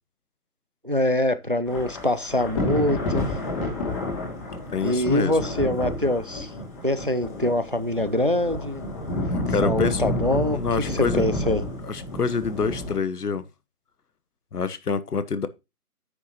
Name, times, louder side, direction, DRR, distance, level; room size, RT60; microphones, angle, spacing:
voice 1, 0.8-3.3 4.8-6.5 6.8-8.8 9.6-10.6 10.9-11.6, left 1 dB, 40° right, 0.4 m, -24 dB
Thunder / Rain, 1.7-13.0, left 1 dB, 20° left, 2.4 m, -30 dB
voice 2, 4.7-5.4 9.3-10.1 10.5-11.3 11.8-13.5 14.5-15.5, left 5 dB, 80° left, 1.1 m, -27 dB
9.5 x 6.9 x 2.9 m
figure-of-eight pair, 165°, 46 cm